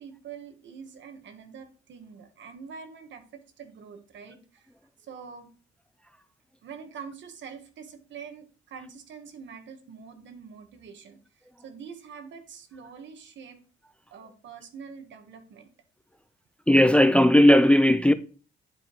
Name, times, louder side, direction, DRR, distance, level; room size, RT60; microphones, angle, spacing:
voice 1, 0.0-4.7 5.0-5.5 6.6-13.6 14.1-15.7, right 6 dB, 70° right, 1.4 m, -45 dB
voice 2, 16.7-18.1, left 1 dB, 5° left, 0.4 m, -17 dB
10.0 x 5.0 x 3.1 m
cardioid pair, 90°, 20 cm